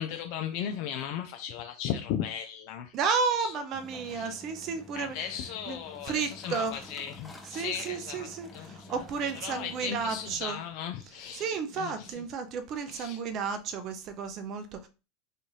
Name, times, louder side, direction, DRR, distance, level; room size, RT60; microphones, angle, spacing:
voice 1, 0.0-2.9 3.4-3.5 4.1-4.3 4.9-9.0 9.4-11.5 11.8-12.2 12.9-13.2, left 9 dB, 60° left, 0.3 m, -36 dB
voice 2, 2.9-5.3 5.7-5.8 6.0-6.7 7.5-10.6 11.3-14.9, right 5 dB, 45° right, 0.4 m, -32 dB
sound 1, 3.7-10.4, left 1 dB, 15° left, 0.5 m, -49 dB
2.6 x 2.4 x 2.9 m
hypercardioid pair, 90°, 0 cm